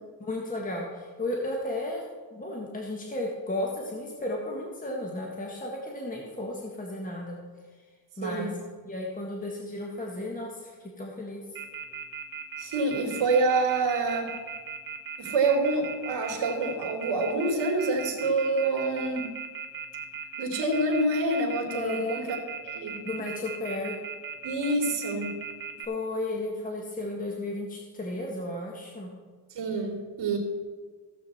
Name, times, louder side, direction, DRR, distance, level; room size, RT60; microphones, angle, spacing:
voice 1, 0.2-2.0 2.3-7.4 8.2-8.5 8.8-11.4 21.7-22.2 23.0-24.0 25.8-29.1, left 2 dB, 20° left, -1 dB, 1.5 m, -34 dB
voice 2, 8.2-8.5 12.6-14.3 15.2-19.3 20.4-22.4 22.6-23.0 24.4-25.4 29.5-30.4, right 3 dB, 65° right, 1 dB, 2.6 m, -27 dB
Telephone, 11.6-25.9, right 7 dB, 50° right, 1.2 m, -37 dB
15.5 x 7.6 x 4.2 m, 1.4 s
cardioid pair, 140°, 45 cm